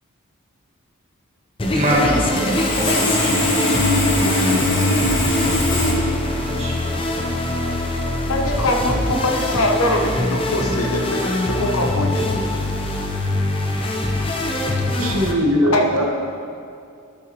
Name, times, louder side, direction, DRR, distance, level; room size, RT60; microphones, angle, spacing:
sound 1, 1.6-15.3, left 1 dB, 25° left, 0.6 m, -23 dB
voice 1, 1.7-3.3 3.9-4.0 6.2-6.7, right 1 dB, 30° right, -4 dB, 1.4 m, -24 dB
Sawing, 2.4-5.9, left 1 dB, 60° left, 1.6 m, -21 dB
voice 2, 8.3-12.3 15.6-16.0, left 1 dB, 85° left, 1 dB, 1.0 m, -22 dB
voice 3, 15.0-16.0, equal, 75° right, 0 dB, 1.1 m, -20 dB
11.5 x 6.2 x 3.0 m, 2.4 s
head